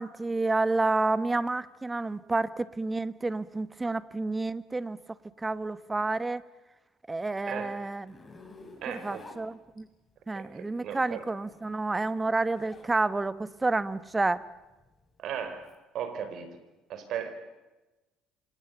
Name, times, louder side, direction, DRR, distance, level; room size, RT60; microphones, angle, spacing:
voice 1, 0.0-5.0 5.4-6.4 7.1-8.2 8.9-9.9 10.3-14.5, right 3 dB, 20° right, 15 dB, 1.4 m, -29 dB
Zipper (clothing), 8.1-10.1 11.3-12.9 13.3-15.7, left 2 dB, 20° left, 7.1 m, -52 dB
voice 2, 8.8-9.3 10.3-11.2 15.2-15.7 15.9-16.6 16.9-17.3, right 8 dB, 60° right, 9 dB, 5.1 m, -36 dB
28.0 x 26.5 x 7.0 m, 1.1 s
hypercardioid pair, 65°, 0 cm